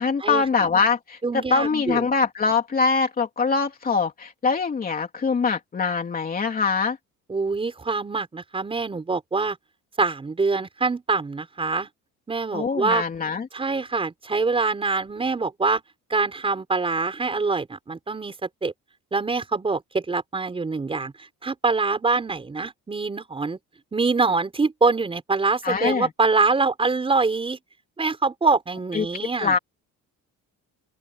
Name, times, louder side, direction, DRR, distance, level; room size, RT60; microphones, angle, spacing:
voice 1, 0.0-1.2 1.5-7.0 12.5-13.5 25.6-26.1 28.9-29.1 29.4-29.6, left 5 dB, 25° left, 3.1 m, -23 dB
voice 2, 1.2-2.0 7.3-9.6 10.0-11.9 12.3-13.0 13.5-15.8 16.1-18.7 19.1-23.6 23.9-27.6 28.0-29.6, right 4 dB, 15° right, 5.4 m, -24 dB
open air
cardioid pair, 175°, 33 cm